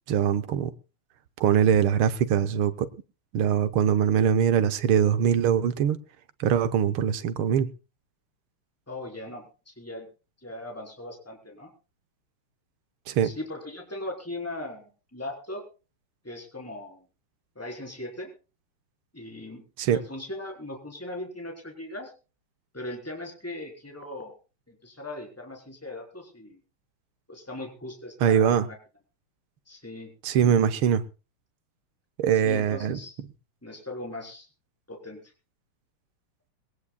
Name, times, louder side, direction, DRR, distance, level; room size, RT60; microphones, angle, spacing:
voice 1, 0.1-0.7 1.4-2.9 3.3-6.0 6.4-7.7 13.1-13.3 19.8-20.0 28.2-28.7 30.2-31.0 32.2-33.0, right 8 dB, 75° right, 1.8 m, -22 dB
voice 2, 8.9-10.1 10.4-11.7 13.2-15.6 16.2-17.1 17.6-18.3 19.1-19.6 19.9-22.1 22.7-24.3 24.7-26.6 27.3-28.8 29.7-30.1 32.3-33.2 33.6-34.5 34.9-35.2, left 1 dB, 5° left, 3.8 m, -39 dB
21.5 x 18.5 x 2.3 m
omnidirectional pair, 2.4 m